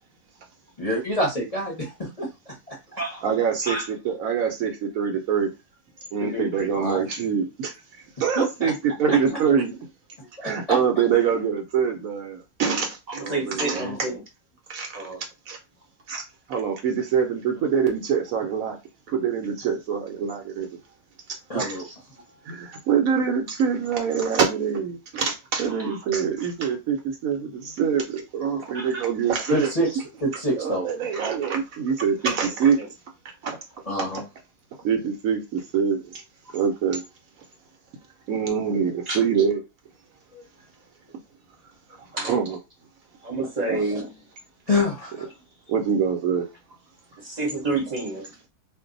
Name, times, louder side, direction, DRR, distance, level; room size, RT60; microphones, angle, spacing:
voice 1, 0.8-2.8 6.7-7.1 8.3-8.7 9.1-9.4 10.2-10.8 13.5-14.0 21.5-21.9 29.5-30.9 33.9-34.2 40.3-40.4 44.7-45.3, equal, 30° left, 0.7 m, -27 dB
voice 2, 3.2-5.5 6.1-7.7 8.2-9.7 10.4-13.8 14.7-15.0 15.5-15.6 16.1-16.2 16.5-18.8 19.1-20.7 21.5-21.8 22.5-27.0 27.2-29.7 30.3-32.8 33.4-33.6 34.1-34.2 34.8-36.0 36.5-37.0 38.3-39.6 42.2-42.6 43.7-43.8 45.7-46.5, right 7 dB, 70° right, 0.9 m, -24 dB
voice 3, 6.2-6.7 11.1-11.2 13.1-14.2 14.9-15.2 25.7-26.0 28.7-29.0 32.4-32.9 39.1-39.2 42.1-42.6 43.2-44.2 47.1-48.3, right 2 dB, 35° right, 0.8 m, -30 dB
2.6 x 2.1 x 3.8 m
omnidirectional pair, 1.7 m